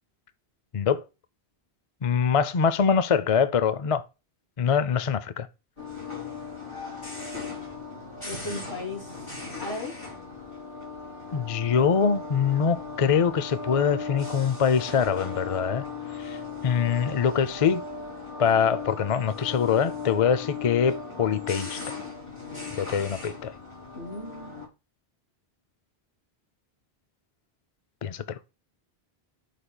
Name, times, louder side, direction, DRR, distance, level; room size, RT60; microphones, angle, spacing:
voice 1, 0.7-1.0 2.0-4.0 4.6-5.5 11.3-15.8 16.2-16.4 16.6-17.8 18.4-22.0 22.7-23.5 28.0-28.4, left 7 dB, 45° left, 0.5 m, -24 dB
sound 1, 5.8-24.7, left 4 dB, 30° left, 3.2 m, -37 dB
voice 2, 8.3-9.2 9.6-9.9 23.9-24.6, left 2 dB, 75° left, 3.8 m, -36 dB
11.5 x 5.1 x 2.2 m
omnidirectional pair, 1.1 m